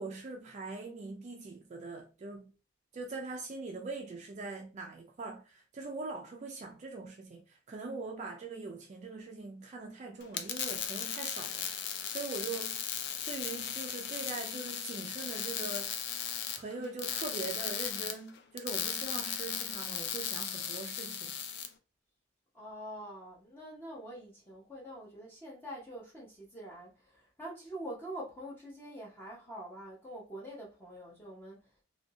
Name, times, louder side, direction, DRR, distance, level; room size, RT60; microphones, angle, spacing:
voice 1, 0.0-2.5 2.9-12.8 13.3-15.9 16.6-21.3, right 3 dB, 35° right, 0.3 m, -42 dB
sound 1, 10.2-21.7, left 8 dB, 55° left, 0.4 m, -37 dB
voice 2, 22.5-31.6, right 1 dB, 10° left, 0.6 m, -45 dB
2.7 x 2.6 x 2.6 m
head